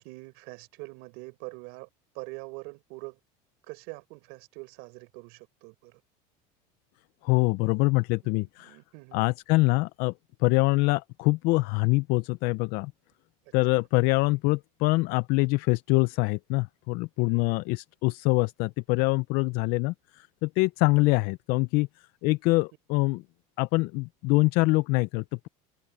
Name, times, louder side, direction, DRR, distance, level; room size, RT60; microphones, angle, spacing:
voice 1, 0.0-1.9 2.1-3.2 3.7-6.0 8.2-9.3 17.3-17.6, right 27 dB, 75° right, 4.6 m, -44 dB
voice 2, 7.2-8.8 9.1-10.1 10.4-12.9 13.5-21.9 22.2-23.2 23.6-25.5, left 24 dB, 65° left, 0.4 m, -24 dB
open air
cardioid pair, 130°, 18 cm